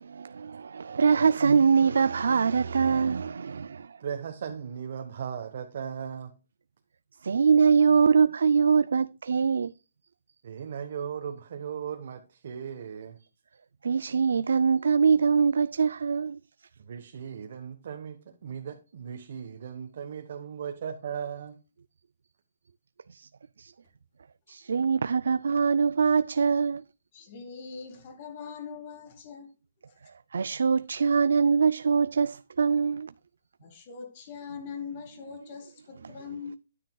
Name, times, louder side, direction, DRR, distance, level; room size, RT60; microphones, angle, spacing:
voice 1, 0.2-4.0 7.2-9.7 13.8-16.4 23.1-23.3 23.6-23.7 24.5-26.8 30.3-33.1, right 6 dB, 80° right, 0.4 m, -23 dB
voice 2, 4.0-6.3 10.4-13.2 16.8-21.6, right 7 dB, 50° right, 1.1 m, -37 dB
voice 3, 27.1-29.5 29.9-30.0 33.6-36.6, left 6 dB, 35° left, 2.3 m, -41 dB
10.0 x 9.2 x 2.3 m
hypercardioid pair, 165°, 0 cm